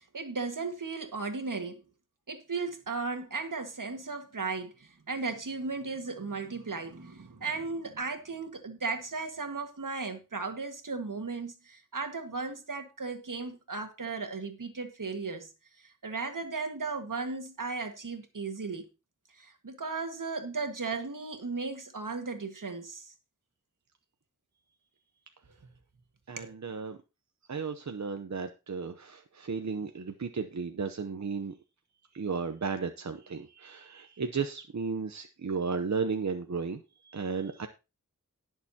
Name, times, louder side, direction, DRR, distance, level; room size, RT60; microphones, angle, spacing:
voice 1, 0.0-1.8 2.3-15.5 15.8-18.9 19.3-23.1 26.4-26.5, right 4 dB, 80° right, 1.7 m, -36 dB
voice 2, 26.3-27.0 27.5-31.5 32.1-37.7, right 5 dB, 60° right, 0.8 m, -34 dB
18.5 x 6.7 x 2.8 m
wide cardioid pair, 60°, 31 cm